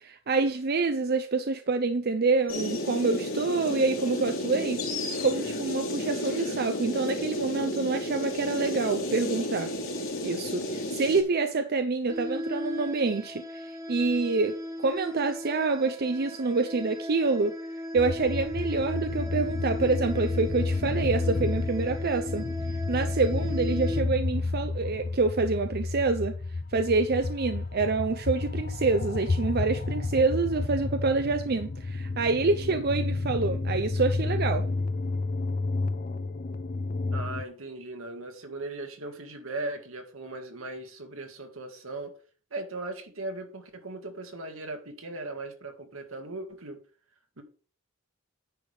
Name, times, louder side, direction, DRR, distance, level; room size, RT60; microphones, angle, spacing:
voice 1, 0.0-4.8 5.2-9.7 10.2-17.6 17.9-22.4 22.9-26.3 26.7-34.6, right 3 dB, 50° right, 0.6 m, -27 dB
sound 1, 2.5-11.2, left 1 dB, 70° left, 3.2 m, -32 dB
sound 2, 12.1-24.0, left 1 dB, 15° right, 1.1 m, -37 dB
sound 3, 18.0-37.4, left 3 dB, 40° left, 0.5 m, -31 dB
voice 2, 37.1-42.2 42.5-46.8 47.4-47.5, right 2 dB, 80° right, 1.8 m, -38 dB
9.9 x 3.5 x 6.5 m
head